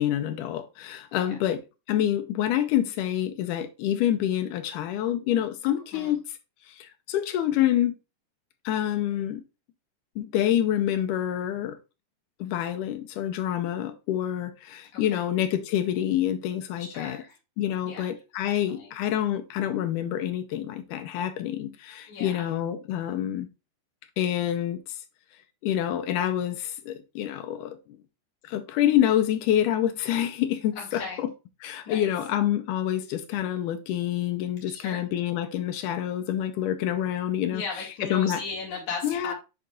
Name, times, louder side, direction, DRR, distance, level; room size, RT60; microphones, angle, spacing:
voice 1, 0.0-1.6 1.9-6.2 6.7-7.9 8.7-9.4 10.2-11.8 12.4-17.2 17.6-23.5 24.2-24.8 25.6-28.0 28.4-31.3 31.6-37.6 38.0-38.4 39.0-39.3, left 11 dB, 80° left, 2.1 m, -27 dB
voice 2, 14.9-15.3 16.8-17.4 17.9-18.0 18.7-18.9 22.1-22.5 30.8-31.2 31.9-32.1 34.7-35.1 37.5-39.3, left 4 dB, 60° left, 3.5 m, -37 dB
10.5 x 4.0 x 2.4 m
omnidirectional pair, 3.9 m